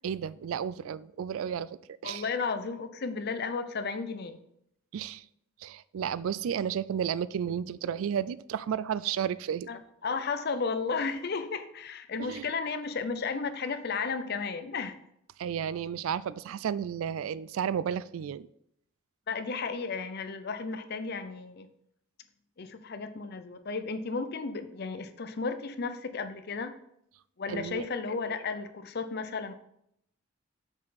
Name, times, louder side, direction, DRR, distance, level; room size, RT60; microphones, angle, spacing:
voice 1, 0.0-2.2 4.9-5.2 5.6-9.7 12.2-12.5 15.4-18.5 27.5-27.9, right 8 dB, 75° right, 0.3 m, -32 dB
voice 2, 2.0-4.4 9.7-15.0 19.3-21.7 22.6-26.8 27.4-29.5, left 4 dB, 50° left, 0.6 m, -34 dB
6.5 x 6.1 x 4.2 m
head